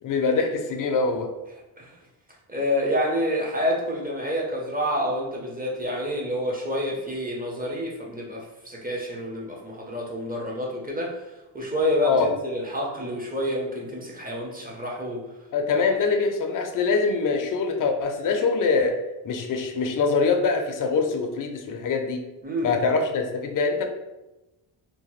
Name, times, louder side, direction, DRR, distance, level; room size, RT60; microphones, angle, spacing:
voice 1, 0.0-1.3 12.0-12.3 15.5-22.3 22.6-23.9, left 4 dB, 45° left, 5 dB, 0.4 m, -24 dB
voice 2, 2.5-11.1 11.5-15.2 22.4-22.8, equal, 20° right, -2 dB, 0.7 m, -28 dB
2.8 x 2.1 x 3.0 m, 1.0 s
cardioid pair, 85°, 49 cm